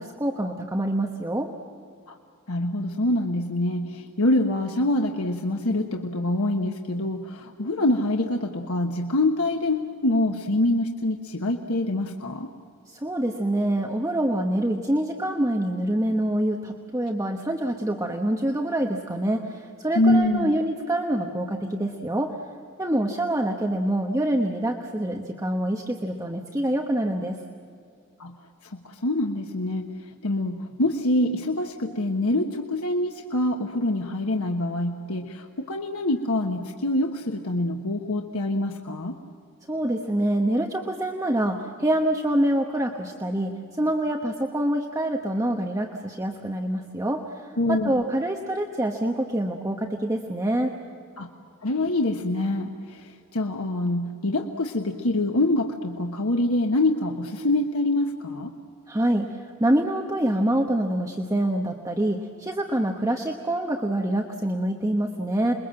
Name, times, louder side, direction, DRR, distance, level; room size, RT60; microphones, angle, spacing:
voice 1, 0.0-1.5 12.9-22.3 22.8-27.4 39.7-50.7 58.9-65.5, right 1 dB, 15° right, 2 dB, 1.1 m, -26 dB
voice 2, 2.5-12.5 19.9-20.6 28.2-28.3 28.6-29.9 30.2-39.1 47.6-48.0 51.2-51.3 51.6-58.5, left 1 dB, 80° left, 2 dB, 1.3 m, -25 dB
27.5 x 22.0 x 7.7 m, 2.4 s
head